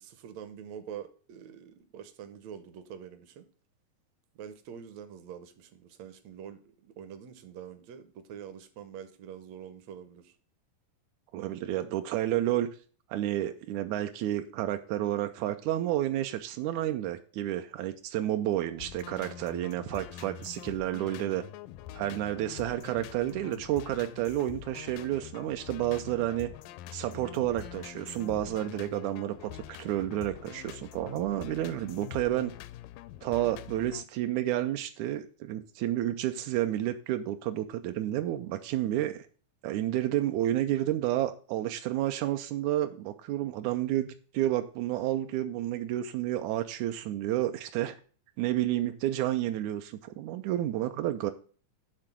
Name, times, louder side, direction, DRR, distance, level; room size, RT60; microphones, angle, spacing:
voice 1, 0.0-3.5 4.4-10.3, right 8 dB, 70° right, 9 dB, 1.7 m, -45 dB
voice 2, 11.3-12.7 13.1-21.4 21.9-26.5 26.9-32.5 33.2-39.3 39.6-44.1 44.3-47.9 48.4-51.3, right 13 dB, 90° right, 7 dB, 1.6 m, -30 dB
sound 1, 18.8-34.0, left 13 dB, 80° left, 2.1 m, -45 dB
9.8 x 3.7 x 5.9 m, 0.40 s
omnidirectional pair, 4.0 m